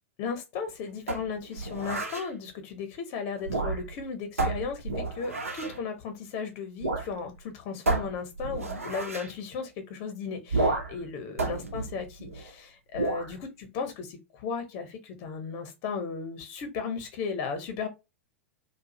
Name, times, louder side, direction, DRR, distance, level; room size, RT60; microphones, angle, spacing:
voice 1, 0.2-17.9, left 5 dB, 45° left, 1.0 m, -35 dB
sound 1, 1.1-2.3 3.4-4.0 4.4-5.8 6.8-7.1 7.4-7.5 7.9-9.3 10.5-11.0 11.4-12.5 12.9-13.3, right 3 dB, 85° right, 0.8 m, -31 dB
2.6 x 2.4 x 2.7 m
figure-of-eight pair, 95°, 7 cm